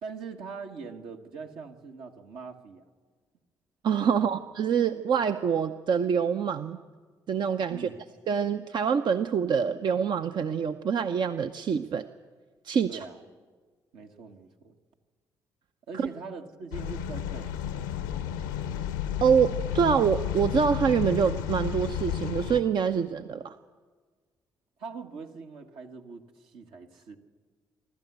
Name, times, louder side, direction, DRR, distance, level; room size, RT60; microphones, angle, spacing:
voice 1, 0.0-2.8 4.1-4.3 7.7-8.0 12.9-13.2 13.9-14.7 15.9-17.5 24.8-27.2, right 5 dB, 70° right, 3 dB, 1.6 m, -42 dB
voice 2, 3.8-6.8 7.3-7.9 8.3-12.1 12.6-13.0 15.9-16.1 19.2-23.5, right 7 dB, 55° right, 9 dB, 0.7 m, -25 dB
sound 1, 16.7-22.6, left 9 dB, 90° left, 0.8 m, -32 dB
26.5 x 12.0 x 8.1 m, 1.5 s
hypercardioid pair, 45°, 9 cm